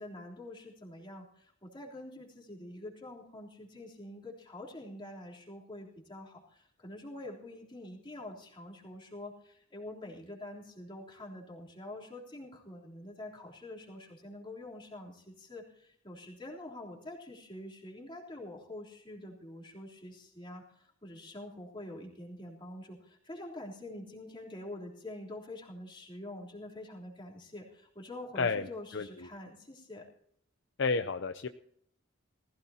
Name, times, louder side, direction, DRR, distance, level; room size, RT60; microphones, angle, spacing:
voice 1, 0.0-30.1, left 1 dB, 25° left, -2 dB, 3.4 m, -46 dB
voice 2, 28.4-28.7 28.9-29.1 30.8-31.5, left 4 dB, 55° left, 9 dB, 0.6 m, -30 dB
19.5 x 16.0 x 2.9 m, 0.68 s
head